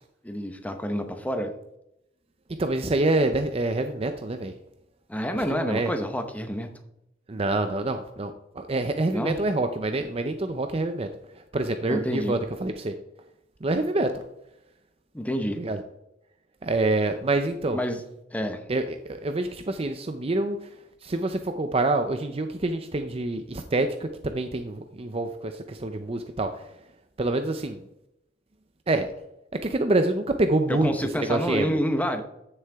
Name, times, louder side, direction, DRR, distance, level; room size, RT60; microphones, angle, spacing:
voice 1, 0.2-1.5 5.1-6.7 9.1-9.4 11.9-12.4 15.1-15.6 17.7-18.0 18.3-18.6 30.7-32.2, equal, 10° left, 6 dB, 0.9 m, -28 dB
voice 2, 2.6-4.5 5.5-5.9 7.3-11.1 11.5-12.9 13.6-14.2 15.6-15.8 16.6-17.8 18.7-20.7 21.0-26.5 27.2-27.8 28.9-29.1 29.6-30.9 31.2-31.8, right 2 dB, 30° right, 7 dB, 0.5 m, -26 dB
14.0 x 6.5 x 3.5 m, 0.84 s
head